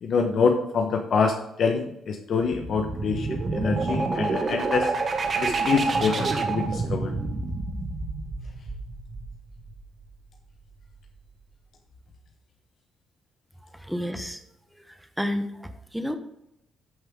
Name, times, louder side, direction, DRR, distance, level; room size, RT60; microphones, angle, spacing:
voice 1, 0.0-4.9 5.4-7.1, left 5 dB, 60° left, 4 dB, 1.1 m, -26 dB
sound 1, 2.4-10.0, right 3 dB, 40° right, 1.6 m, -28 dB
voice 2, 13.8-14.4 15.2-16.2, equal, ahead, 6 dB, 1.2 m, -30 dB
13.5 x 5.7 x 3.7 m, 0.82 s
cardioid pair, 90°, 0 cm